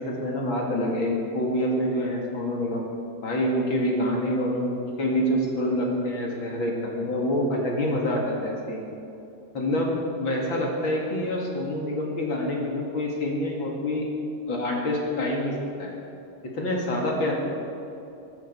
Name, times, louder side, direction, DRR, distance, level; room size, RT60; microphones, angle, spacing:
voice 1, 0.0-2.8 3.2-8.9 9.5-14.1 14.5-15.9 16.4-17.3, left 1 dB, 35° left, -2 dB, 2.6 m, -26 dB
23.5 x 13.0 x 4.7 m, 2.8 s
omnidirectional pair, 4.4 m